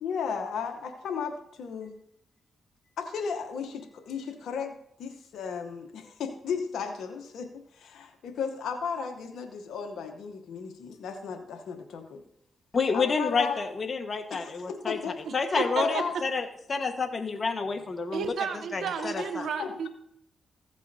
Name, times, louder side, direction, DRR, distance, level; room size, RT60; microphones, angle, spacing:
voice 1, 0.0-1.9 3.0-12.2 12.9-13.6 14.3-15.2 15.5-16.1 19.1-19.3 19.6-19.8, left 6 dB, 80° left, 5 dB, 0.9 m, -35 dB
voice 2, 12.7-15.0 15.3-19.5, left 4 dB, 45° left, 7 dB, 1.3 m, -29 dB
voice 3, 15.3-16.0 18.1-19.9, right 6 dB, 80° right, 9 dB, 0.8 m, -32 dB
15.0 x 8.2 x 2.7 m, 0.72 s
supercardioid pair, 55°, 0 cm